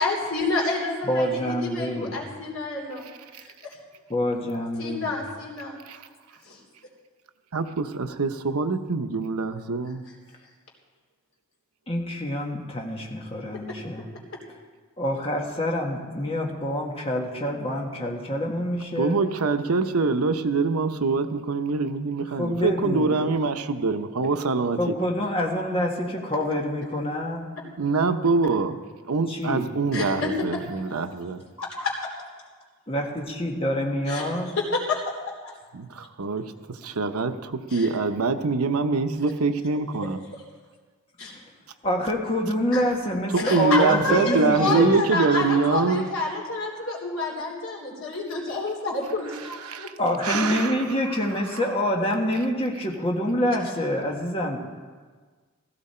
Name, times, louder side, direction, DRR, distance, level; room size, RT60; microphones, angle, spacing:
voice 1, 0.0-3.1 3.4-3.5 4.8-5.8 6.4-6.6 29.9-30.3 31.6-32.1 34.1-34.3 34.6-35.0 35.4-35.5 37.7-37.9 39.7-39.8 41.2-41.3 42.7-42.8 43.4-49.9, left 3 dB, 70° left, -1 dB, 3.4 m, -28 dB
voice 2, 1.0-2.2 4.1-5.1 11.9-14.0 15.0-19.2 22.3-23.2 24.8-27.5 29.3-29.7 32.9-34.6 41.3-41.4 41.8-45.0 50.0-54.6, equal, 25° left, 0 dB, 1.6 m, -26 dB
voice 3, 7.5-10.0 19.0-24.8 27.8-28.8 29.1-31.4 35.7-36.5 36.8-40.2 43.3-46.0 49.6-49.9 50.2-50.8, right 4 dB, 90° right, 8 dB, 0.9 m, -24 dB
16.0 x 15.0 x 4.4 m, 1.5 s
head